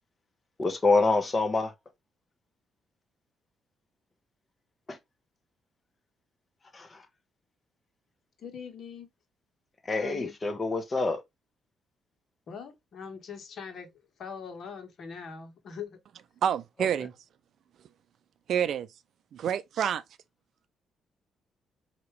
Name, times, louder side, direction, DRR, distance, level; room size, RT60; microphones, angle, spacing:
voice 1, 0.6-1.7 4.9-5.0 6.7-7.0 9.9-11.2, left 3 dB, 30° left, 1.1 m, -26 dB
voice 2, 8.4-9.1 9.9-10.3 12.5-13.9 14.2-16.0, left 6 dB, 60° left, 1.5 m, -41 dB
voice 3, 16.4-17.1 18.5-18.9 19.3-20.0, right 9 dB, 65° right, 0.4 m, -28 dB
4.6 x 2.9 x 3.2 m
cardioid pair, 90°, 0 cm